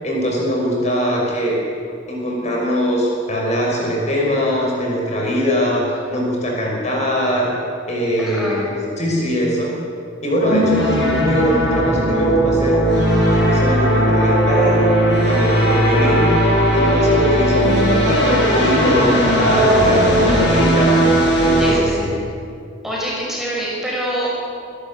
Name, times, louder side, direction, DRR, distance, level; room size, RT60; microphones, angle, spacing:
voice 1, 0.0-1.6 2.1-7.5 7.9-9.7 10.2-12.8 13.3-14.8 15.3-16.3 16.7-20.9 21.4-22.1, equal, 40° left, -2 dB, 6.1 m, -21 dB
voice 2, 8.2-8.7 21.6-22.0 22.8-24.3, equal, ahead, -5 dB, 5.6 m, -25 dB
sound 1, 10.4-21.7, equal, 65° left, 6.7 m, -16 dB
26.0 x 13.0 x 8.9 m, 2.5 s
head